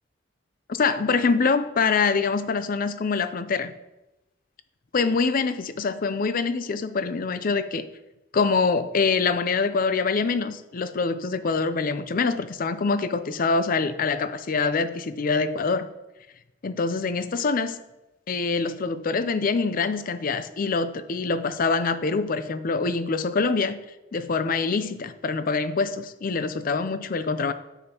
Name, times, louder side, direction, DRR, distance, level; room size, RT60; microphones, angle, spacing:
voice 1, 0.7-3.7 4.9-7.9 8.3-15.9 16.6-17.8 18.3-23.8 24.1-27.5, left 4 dB, 45° left, 12 dB, 0.5 m, -25 dB
9.7 x 7.0 x 2.9 m, 0.96 s
head